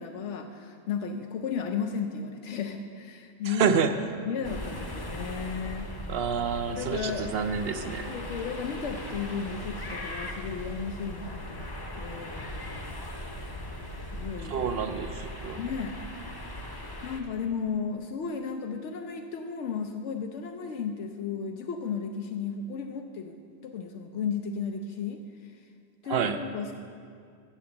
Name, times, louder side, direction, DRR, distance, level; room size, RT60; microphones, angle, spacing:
voice 1, 0.0-3.8 4.2-6.0 6.7-7.3 8.1-11.7 12.0-12.5 14.1-14.6 15.6-16.0 17.0-23.4 23.6-25.6 26.0-26.7, left 6 dB, 85° left, 5 dB, 0.9 m, -34 dB
voice 2, 3.5-3.9 6.1-8.1 14.5-15.6 26.1-26.4, right 7 dB, 65° right, 9 dB, 0.7 m, -28 dB
sound 1, 4.4-17.2, left 1 dB, 25° left, 0.7 m, -39 dB
8.5 x 7.6 x 6.9 m, 2.3 s
omnidirectional pair, 1.2 m